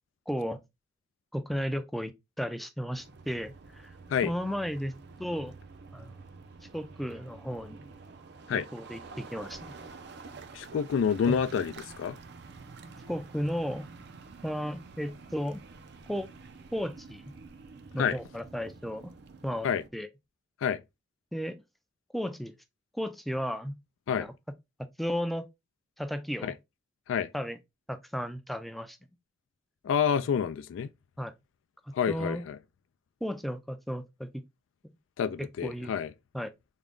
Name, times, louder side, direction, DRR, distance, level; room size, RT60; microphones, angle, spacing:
voice 1, 0.3-0.6 1.3-2.1 2.4-4.0 4.2-4.9 5.2-5.5 5.9-6.1 6.7-7.8 8.5-9.7 11.3-11.4 13.1-13.9 14.4-15.6 16.1-16.3 16.7-17.3 17.9-19.1 19.4-20.1 21.3-21.6 22.1-22.6 22.9-23.8 24.2-24.3 25.0-25.5 26.0-26.5 27.3-27.6 27.9-29.0 31.2-31.3 32.1-32.4 33.2-34.3 34.8-34.9 35.4-35.9 36.3-36.5, equal, ahead, 0.3 m, -34 dB
sound 1, 2.9-19.9, right 4 dB, 60° right, 0.5 m, -49 dB
voice 2, 10.5-12.2 18.0-18.2 19.6-19.8 20.6-20.8 24.1-24.3 26.4-26.5 27.1-27.3 29.8-30.9 31.9-32.6 35.2-36.1, left 7 dB, 90° left, 0.3 m, -28 dB
3.6 x 2.1 x 3.6 m
head